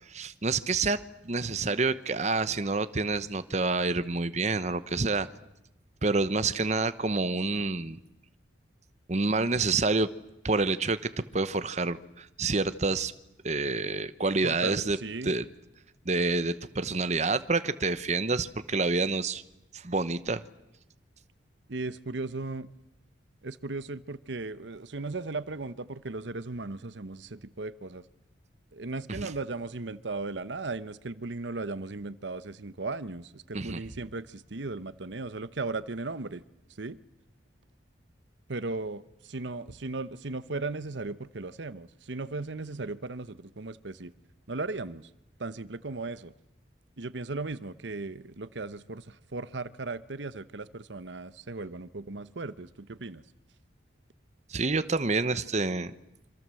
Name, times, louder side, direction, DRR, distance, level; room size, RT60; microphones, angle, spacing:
voice 1, 0.1-5.3 6.0-8.0 9.1-10.1 10.4-13.1 13.4-15.0 15.2-15.4 16.0-19.4 19.7-20.4 29.1-29.3 33.5-33.8 54.5-55.9, right 3 dB, 40° right, 1.0 m, -28 dB
voice 2, 14.4-15.3 21.7-22.7 23.4-28.1 28.7-36.4 36.7-37.0 38.5-44.1 44.5-45.1 45.4-46.3 47.0-53.2, right 3 dB, 75° right, 1.0 m, -36 dB
27.0 x 26.0 x 7.7 m
head